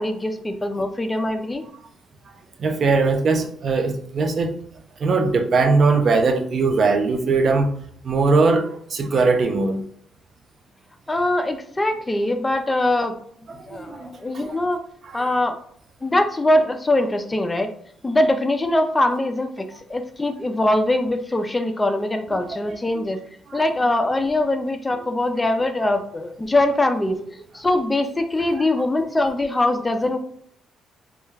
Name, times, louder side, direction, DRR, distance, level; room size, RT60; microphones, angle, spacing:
voice 1, 0.0-1.6 11.1-13.1 13.7-14.8 15.1-15.6 16.0-17.7 18.0-19.6 19.9-23.2 23.5-27.2 27.5-30.2, left 1 dB, 20° left, 0.3 m, -22 dB
voice 2, 2.6-4.6 5.0-7.7 8.0-9.8 13.5-14.6 15.0-15.3 22.4-23.1 23.5-23.6, right 3 dB, 50° right, 0.4 m, -21 dB
2.3 x 2.1 x 3.2 m
cardioid pair, 90°, 0 cm